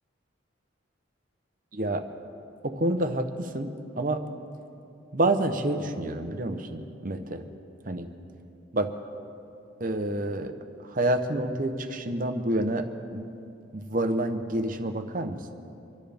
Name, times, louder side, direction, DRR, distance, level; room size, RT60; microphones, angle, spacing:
voice 1, 1.7-2.0 2.6-3.7 4.0-4.2 5.1-7.4 7.9-8.1 8.7-8.9 9.8-10.5 10.9-13.2 13.7-15.4, right 1 dB, 45° right, 7 dB, 0.9 m, -28 dB
26.0 x 12.5 x 3.5 m, 2.6 s
head